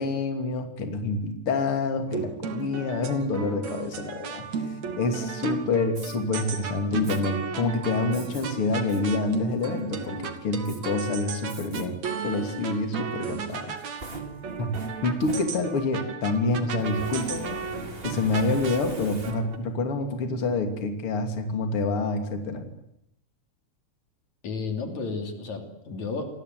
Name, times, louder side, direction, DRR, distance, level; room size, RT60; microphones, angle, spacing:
voice 1, 0.0-4.6 5.0-13.7 14.6-14.7 15.0-17.6 18.0-22.7, left 3 dB, 45° left, 5 dB, 3.6 m, -27 dB
sound 1, 2.1-19.6, right 5 dB, 70° right, 3.6 m, -35 dB
Fire, 5.9-6.2 7.0-7.2 8.1-8.4 8.9-9.0 9.5-10.0 10.6-10.8 11.5-11.9 12.3-12.4 13.5-16.0 16.9-19.7, right 1 dB, 20° right, 2.7 m, -42 dB
voice 2, 24.4-26.4, left 4 dB, 70° left, 5 dB, 4.2 m, -32 dB
28.5 x 20.5 x 9.4 m, 0.78 s
omnidirectional pair, 3.4 m